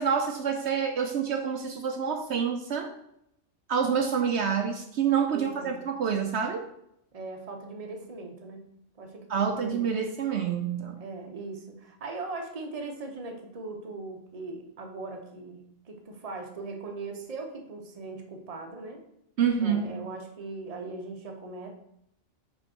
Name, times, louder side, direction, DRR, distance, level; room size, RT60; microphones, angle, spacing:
voice 1, 0.0-2.9 3.7-6.6 9.3-11.0 19.4-19.9, right 7 dB, 70° right, 4 dB, 0.9 m, -27 dB
voice 2, 5.3-5.8 7.1-8.7 9.0-9.9 11.0-19.0 19.6-21.7, right 3 dB, 35° right, 3 dB, 0.9 m, -39 dB
5.3 x 4.8 x 4.4 m, 0.76 s
omnidirectional pair, 1.2 m